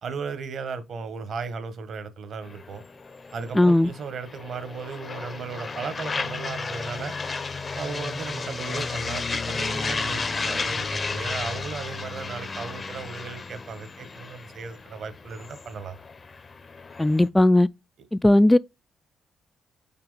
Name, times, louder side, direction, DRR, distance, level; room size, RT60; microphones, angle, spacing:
voice 1, 0.0-2.8 3.3-7.1 7.7-16.0, right 5 dB, 65° right, 1.2 m, -36 dB
sound 1, 2.4-17.3, left 4 dB, 35° left, 0.7 m, -33 dB
voice 2, 3.5-3.9 17.0-17.7 18.1-18.6, left 1 dB, 10° left, 0.3 m, -17 dB
5.7 x 4.3 x 4.0 m
cardioid pair, 70°, 0 cm